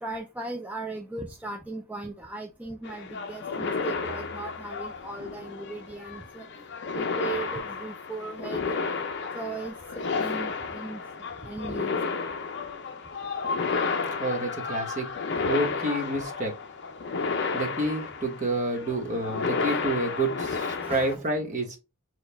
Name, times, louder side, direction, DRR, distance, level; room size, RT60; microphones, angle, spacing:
voice 1, 0.0-6.5 6.9-8.7 9.3-11.0 11.4-12.0 20.5-21.3, right 3 dB, 5° right, 0.4 m, -38 dB
sound 1, 2.8-21.1, left 4 dB, 55° left, 0.6 m, -32 dB
voice 2, 14.2-15.1 15.4-16.5 17.5-21.8, right 2 dB, 35° right, 1.1 m, -29 dB
6.1 x 2.4 x 3.4 m
head